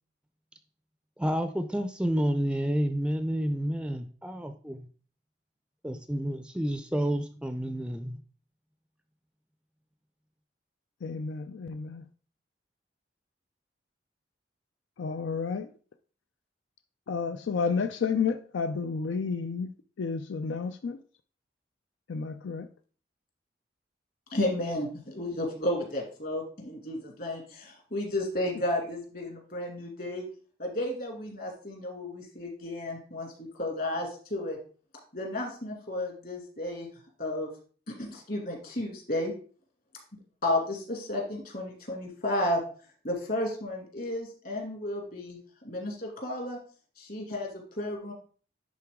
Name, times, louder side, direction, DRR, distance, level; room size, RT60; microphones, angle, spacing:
voice 1, 1.2-4.9 5.8-8.2, equal, 5° right, 0.4 m, -30 dB
voice 2, 11.0-12.0 15.0-15.7 17.1-21.0 22.1-22.7, left 5 dB, 90° left, 0.4 m, -31 dB
voice 3, 24.3-30.3 30.6-34.6 35.1-36.9 37.2-37.5 37.9-39.3 40.4-42.6 43.0-45.4 45.6-46.6 47.0-48.1, left 1 dB, 55° left, 2.2 m, -32 dB
10.5 x 3.8 x 3.6 m
head